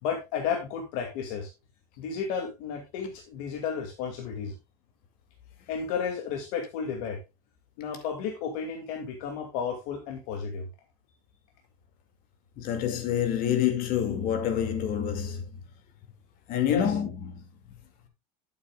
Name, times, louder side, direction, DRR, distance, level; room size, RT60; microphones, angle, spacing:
voice 1, 0.0-1.5 2.0-4.5 5.7-7.2 7.8-10.7 16.7-16.9, left 6 dB, 65° left, 2.4 m, -33 dB
voice 2, 12.6-15.4 16.5-17.5, left 9 dB, 45° left, 2.3 m, -27 dB
12.0 x 8.7 x 2.3 m
cardioid pair, 160°, 20 cm